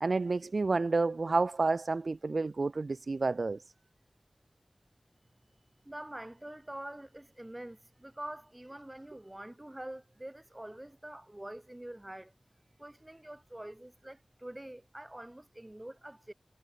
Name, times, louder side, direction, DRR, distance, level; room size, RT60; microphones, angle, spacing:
voice 1, 0.0-3.6, right 3 dB, 75° right, 0.5 m, -30 dB
voice 2, 5.8-12.3 12.8-16.3, right 1 dB, 20° right, 7.9 m, -45 dB
wide cardioid pair, 60°, 0 cm